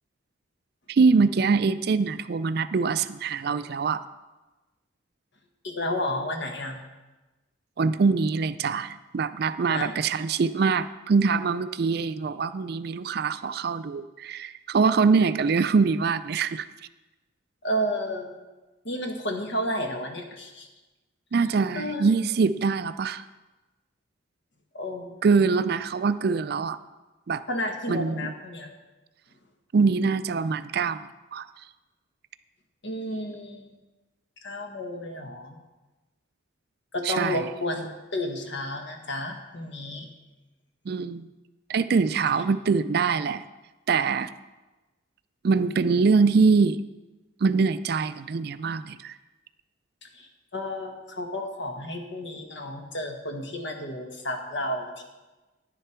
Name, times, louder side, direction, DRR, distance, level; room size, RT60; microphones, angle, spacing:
voice 1, 0.9-4.0 7.8-16.7 21.3-23.2 25.2-26.8 27.3-27.4 27.9-28.3 29.7-31.4 37.0-37.4 40.9-41.3 41.7-43.4 43.9-44.3 45.4-46.8 47.4-49.2, right 4 dB, 50° right, 13 dB, 0.3 m, -24 dB
voice 2, 5.6-6.8 9.7-9.9 17.6-18.3 18.8-20.7 21.7-22.1 24.7-25.1 27.5-28.7 32.8-33.7 34.4-35.6 36.9-40.1 50.0-55.0, left 1 dB, 65° left, 3 dB, 1.5 m, -32 dB
10.5 x 10.0 x 4.5 m, 1.1 s
head